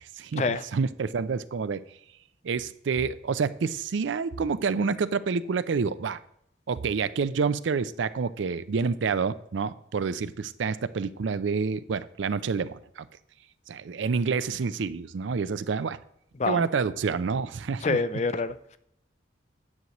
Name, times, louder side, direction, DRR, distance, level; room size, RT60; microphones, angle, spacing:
voice 1, 0.0-0.4 0.7-1.8 2.4-6.2 6.7-13.1 13.7-16.0 16.5-18.0, right 5 dB, 80° right, 15 dB, 0.4 m, -28 dB
voice 2, 17.8-18.8, left 4 dB, 35° left, 13 dB, 0.4 m, -27 dB
9.6 x 7.8 x 3.0 m, 0.73 s
head